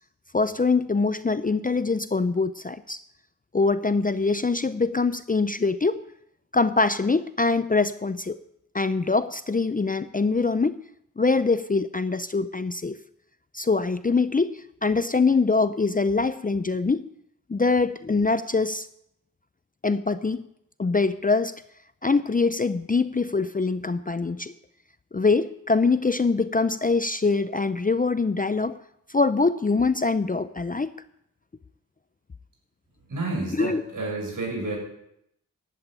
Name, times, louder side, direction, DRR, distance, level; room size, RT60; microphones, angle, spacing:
voice 1, 0.3-3.0 3.5-6.0 6.5-8.4 8.7-10.8 11.2-13.0 13.5-17.1 17.5-18.9 19.8-20.5 20.8-21.5 22.0-24.5 25.1-28.8 29.1-30.9 33.5-33.8, left 4 dB, 25° left, 13 dB, 0.5 m, -23 dB
voice 2, 33.1-34.8, right 2 dB, 60° right, -1 dB, 7.1 m, -30 dB
12.0 x 8.5 x 9.0 m, 0.77 s
cardioid pair, 60°, 35 cm